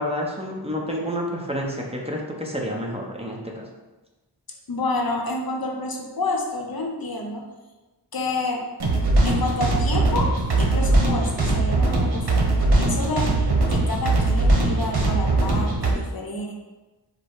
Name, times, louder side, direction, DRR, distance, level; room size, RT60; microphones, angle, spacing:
voice 1, 0.0-3.7, equal, 15° right, -2 dB, 0.7 m, -29 dB
voice 2, 4.7-7.4 8.1-8.6 9.2-16.5, left 2 dB, 55° left, 1 dB, 0.8 m, -29 dB
sound 1, 8.8-15.9, right 2 dB, 65° right, 1.0 m, -20 dB
5.2 x 2.1 x 4.6 m, 1.1 s
wide cardioid pair, 70°, 42 cm